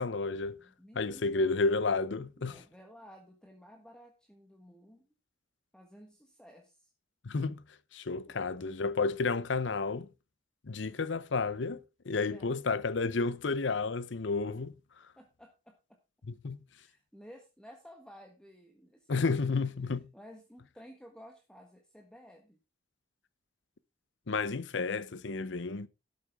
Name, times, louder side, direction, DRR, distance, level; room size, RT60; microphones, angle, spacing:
voice 1, 0.0-0.6 1.0-2.6 7.2-7.6 7.9-10.1 10.6-14.7 16.3-16.6 19.1-20.1 24.3-25.9, left 4 dB, 70° left, 0.7 m, -31 dB
voice 2, 0.6-1.5 2.4-5.1 5.7-6.9 8.3-8.8 12.3-12.5 15.2-16.0 16.8-19.7 20.1-22.6, equal, 5° left, 1.4 m, -54 dB
12.0 x 8.6 x 3.6 m
head